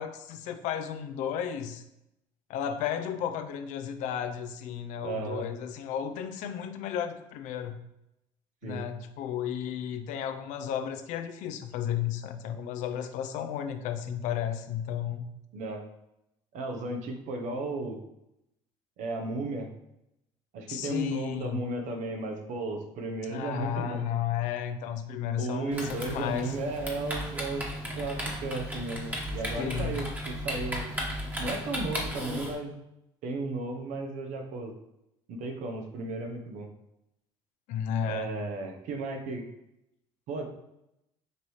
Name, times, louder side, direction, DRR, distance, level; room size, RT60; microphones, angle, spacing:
voice 1, 0.0-1.8 2.5-7.8 8.6-15.3 20.7-21.6 23.2-26.5 29.6-30.0 37.7-38.3, left 9 dB, 70° left, 8 dB, 0.5 m, -33 dB
voice 2, 5.0-5.5 8.6-8.8 15.5-15.8 16.5-18.0 19.0-19.7 20.5-24.0 25.4-27.6 28.0-30.8 31.4-32.7 33.2-34.7 35.3-36.7 38.0-39.4 40.3-40.4, right 3 dB, 65° right, 4 dB, 0.9 m, -34 dB
Typing, 25.7-32.5, equal, 10° right, 1.2 m, -35 dB
5.1 x 2.7 x 3.1 m, 0.85 s
supercardioid pair, 85°, 13 cm